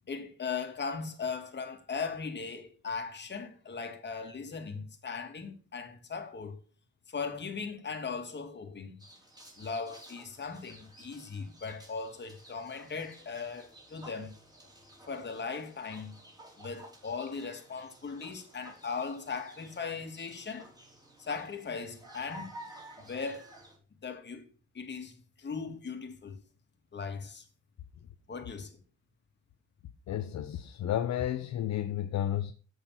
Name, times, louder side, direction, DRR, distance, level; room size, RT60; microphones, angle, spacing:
voice 1, 0.1-6.6 7.1-9.0 9.6-14.3 15.1-16.1 16.6-20.7 21.2-22.5 23.0-23.5 24.0-24.5 24.7-26.4 26.9-27.4 28.3-28.8, left 5 dB, 35° left, 2.3 m, -38 dB
sound 1, 9.0-23.8, right 1 dB, 15° right, 4.2 m, -53 dB
voice 2, 30.1-32.5, left 11 dB, 65° left, 0.9 m, -32 dB
8.2 x 6.7 x 5.7 m
cardioid pair, 90°, 30 cm